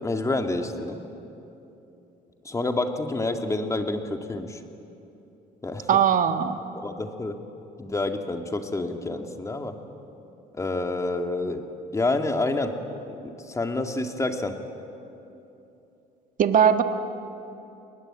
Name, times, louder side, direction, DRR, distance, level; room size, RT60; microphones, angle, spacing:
voice 1, 0.0-1.0 2.4-4.6 5.6-5.9 6.7-7.4 7.8-9.8 10.5-11.7 11.9-12.8 13.1-14.6, left 2 dB, 20° left, 5 dB, 2.1 m, -28 dB
voice 2, 5.9-6.6 16.4-16.8, right 8 dB, 50° right, 8 dB, 1.6 m, -19 dB
30.0 x 20.0 x 8.9 m, 2.9 s
cardioid pair, 110°, 17 cm